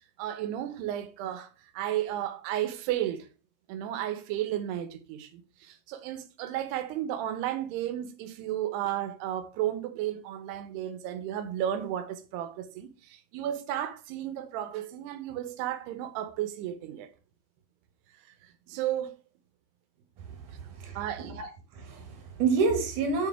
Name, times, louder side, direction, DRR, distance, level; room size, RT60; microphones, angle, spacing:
voice 1, 0.2-3.3 3.7-17.1 18.7-19.1 20.9-21.4, right 11 dB, 80° right, 2.9 m, -33 dB
voice 2, 20.2-21.5 21.7-23.3, right 4 dB, 60° right, 2.6 m, -29 dB
7.2 x 6.3 x 3.5 m
omnidirectional pair, 4.8 m